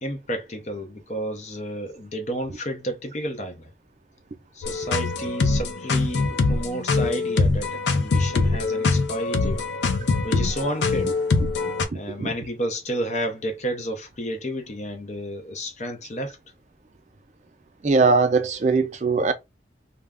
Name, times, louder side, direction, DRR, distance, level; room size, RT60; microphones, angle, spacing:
voice 1, 0.0-3.7 4.5-9.6 10.2-11.1 11.9-16.4, equal, 40° left, 0.6 m, -31 dB
sound 1, 4.6-11.8, left 3 dB, 85° left, 0.5 m, -23 dB
voice 2, 11.9-12.3 17.8-19.3, right 4 dB, 40° right, 0.4 m, -21 dB
2.3 x 2.0 x 3.4 m
head